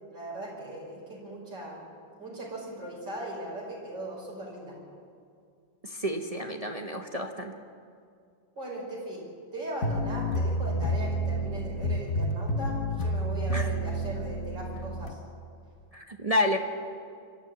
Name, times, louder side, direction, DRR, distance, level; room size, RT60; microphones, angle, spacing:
voice 1, 0.1-1.8 2.2-4.8 8.6-9.2 9.5-15.2, right 1 dB, 60° right, -3 dB, 5.7 m, -38 dB
voice 2, 5.8-7.6 13.5-13.7 15.9-16.6, left 1 dB, 35° right, 4 dB, 0.6 m, -30 dB
sound 1, 9.8-15.1, equal, 40° left, 1.3 m, -29 dB
24.5 x 12.5 x 8.8 m, 2.3 s
omnidirectional pair, 2.1 m